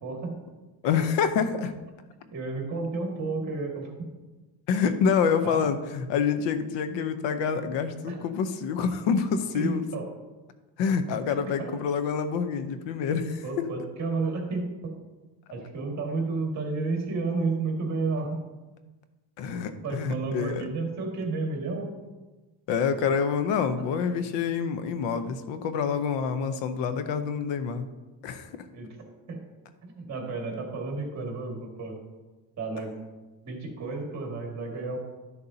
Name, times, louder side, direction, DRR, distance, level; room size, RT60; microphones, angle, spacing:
voice 1, 0.0-0.4 2.3-4.1 5.4-5.6 8.1-8.2 9.5-10.0 11.6-11.8 13.4-14.9 15.5-18.4 19.8-21.9 28.7-28.9 29.3-29.4 29.8-32.0 32.6-33.0 33.4-35.0, right 3 dB, 40° right, 1 dB, 2.0 m, -31 dB
voice 2, 0.8-1.7 4.7-9.8 10.8-13.7 19.4-20.6 22.7-27.9 28.2-28.5, left 6 dB, 80° left, 10 dB, 0.9 m, -27 dB
12.0 x 6.7 x 2.8 m, 1.2 s
cardioid pair, 140°, 44 cm